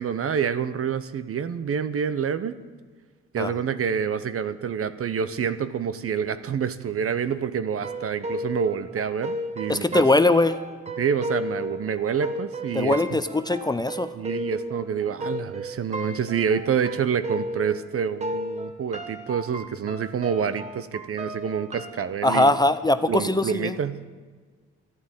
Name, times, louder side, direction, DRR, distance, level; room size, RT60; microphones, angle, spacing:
voice 1, 0.0-2.5 3.3-10.1 11.0-13.2 14.1-22.5 23.1-24.0, right 7 dB, 50° right, 13 dB, 0.9 m, -27 dB
sound 1, 7.8-17.9 18.2-22.0, equal, 20° right, 1.4 m, -34 dB
voice 2, 9.7-10.6 12.7-14.1 22.2-23.8, left 2 dB, 15° left, 11 dB, 0.7 m, -21 dB
12.5 x 11.0 x 9.0 m, 1.5 s
cardioid pair, 90°, 30 cm